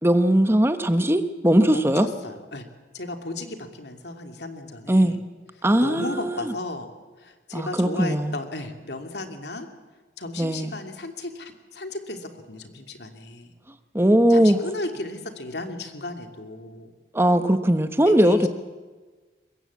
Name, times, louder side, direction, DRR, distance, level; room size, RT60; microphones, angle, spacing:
voice 1, 0.0-2.1 4.9-5.2 5.6-6.5 7.5-8.4 10.4-10.7 13.9-14.6 17.1-18.5, right 1 dB, 15° right, 9 dB, 1.0 m, -19 dB
voice 2, 1.7-2.7 2.9-5.2 5.6-6.9 7.2-9.7 10.2-13.5 14.3-16.9 18.1-18.5, left 2 dB, 70° left, 5 dB, 2.8 m, -35 dB
24.0 x 21.0 x 8.4 m, 1.3 s
head